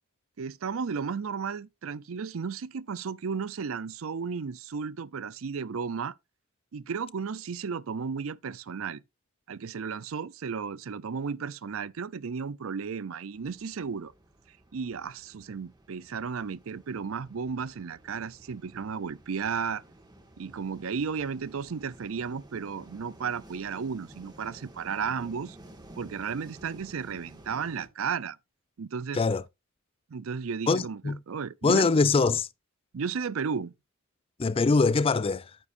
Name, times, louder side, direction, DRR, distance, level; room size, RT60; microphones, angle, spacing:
voice 1, 0.4-6.1 6.7-9.0 9.5-14.1 14.7-19.8 20.4-25.6 26.0-28.4 28.8-29.2 30.1-31.9 32.9-33.7, right 6 dB, 70° right, 0.5 m, -34 dB
sound 1, 13.3-27.9, right 1 dB, 20° right, 1.8 m, -53 dB
voice 2, 30.7-31.2 31.6-32.5 34.4-35.5, left 4 dB, 25° left, 0.4 m, -23 dB
9.8 x 9.2 x 2.5 m
head